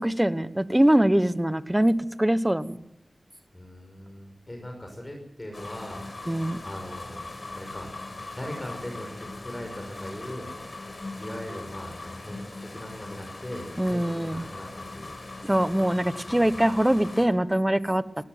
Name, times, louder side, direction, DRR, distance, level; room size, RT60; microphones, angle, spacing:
voice 1, 0.0-2.8 6.3-6.6 13.8-14.4 15.4-18.0, right 1 dB, 15° right, 14 dB, 1.3 m, -23 dB
voice 2, 3.5-7.3 7.5-7.9 8.3-10.8 11.2-15.2 16.3-16.8, left 1 dB, 25° left, 2 dB, 6.1 m, -40 dB
sound 1, 5.5-17.3, left 2 dB, 50° left, 4.9 m, -40 dB
19.5 x 17.5 x 9.3 m, 0.83 s
cardioid pair, 45°, 0 cm